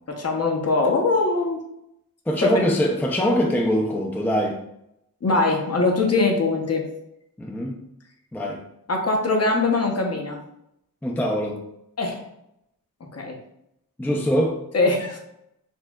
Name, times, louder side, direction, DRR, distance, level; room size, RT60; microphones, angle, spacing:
voice 1, 0.1-1.6 2.4-2.6 5.2-6.8 8.9-10.4 12.0-12.2 13.1-13.3 14.7-15.2, left 3 dB, 45° left, 1 dB, 0.7 m, -22 dB
voice 2, 2.3-4.6 7.4-7.8 8.3-8.6 11.0-11.6 14.0-14.6, equal, 5° left, 0 dB, 0.4 m, -23 dB
4.3 x 2.7 x 2.3 m, 0.80 s
wide cardioid pair, 90°, 36 cm